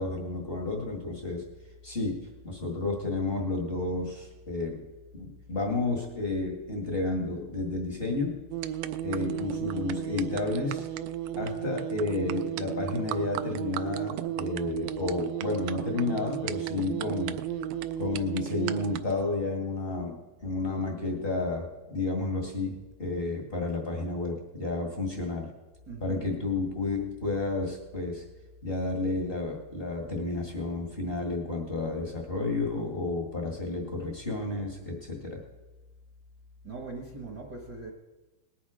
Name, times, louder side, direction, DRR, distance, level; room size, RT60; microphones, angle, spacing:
voice 1, 0.0-1.5 1.8-4.8 5.2-8.4 9.0-10.9 11.4-17.4 18.0-25.5 26.0-28.2 28.6-35.4, left 3 dB, 45° left, 1 dB, 0.7 m, -31 dB
sound 1, 8.5-19.3, right 11 dB, 85° right, 2.4 m, -34 dB
voice 2, 25.9-26.3 36.6-37.9, right 3 dB, 55° right, 0 dB, 1.1 m, -40 dB
19.0 x 10.0 x 4.9 m, 1.1 s
omnidirectional pair, 4.1 m